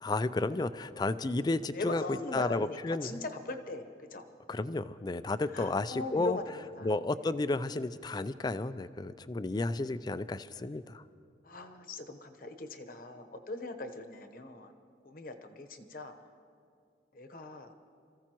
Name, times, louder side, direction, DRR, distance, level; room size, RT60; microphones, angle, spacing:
voice 1, 0.0-3.2 4.5-6.4 6.8-11.0, left 2 dB, 25° left, 14 dB, 0.4 m, -32 dB
voice 2, 1.7-4.2 5.5-6.9 7.2-7.3 11.4-14.7 15.0-16.1 17.1-17.7, left 2 dB, 50° left, 7 dB, 1.0 m, -40 dB
27.0 x 15.0 x 3.0 m, 2.4 s
head